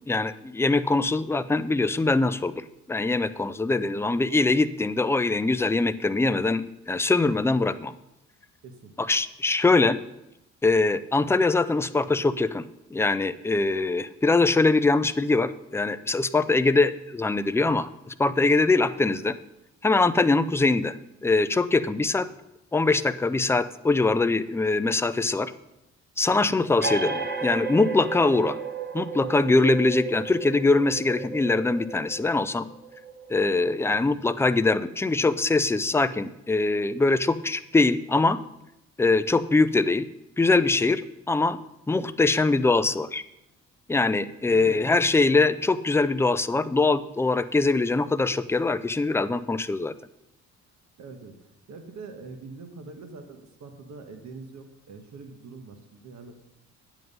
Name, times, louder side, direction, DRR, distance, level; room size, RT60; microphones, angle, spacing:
voice 1, 0.1-7.9 9.0-10.0 10.6-12.6 12.9-19.3 19.8-21.0 21.2-22.3 22.7-25.5 26.2-28.6 28.9-32.7 33.3-38.4 39.0-40.1 40.4-41.6 41.9-43.2 43.9-49.9, left 3 dB, 10° left, 12 dB, 0.4 m, -23 dB
sound 1, 26.8-34.0, right 4 dB, 35° right, 1.3 m, -34 dB
voice 2, 44.5-44.8 51.0-56.4, right 4 dB, 65° right, 6 dB, 1.4 m, -44 dB
9.3 x 7.7 x 5.4 m, 0.87 s
cardioid pair, 90°, 30 cm